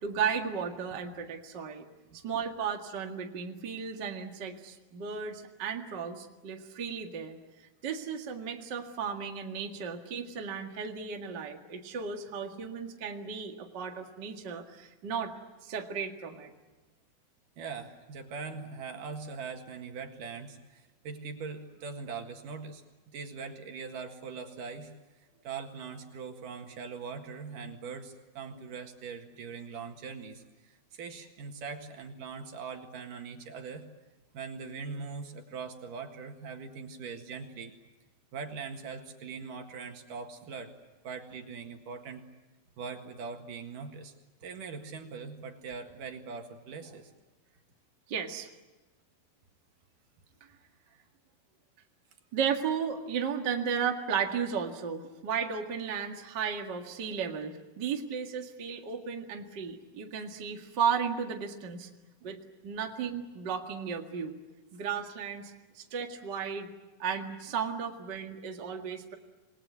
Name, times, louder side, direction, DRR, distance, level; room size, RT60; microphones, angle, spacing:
voice 1, 0.0-1.8 2.2-15.3 15.6-16.5 48.1-48.5 52.3-61.9 62.2-62.4 62.6-64.4 64.7-66.7 67.0-69.1, right 6 dB, 35° right, 2 dB, 2.0 m, -34 dB
voice 2, 17.6-24.9 25.2-33.8 34.3-37.7 38.3-40.7 41.0-42.2 42.8-44.1 44.4-47.1 50.9-51.0 62.2-62.3, right 5 dB, 65° right, 4 dB, 3.3 m, -41 dB
27.5 x 20.5 x 9.4 m, 1.2 s
omnidirectional pair, 4.2 m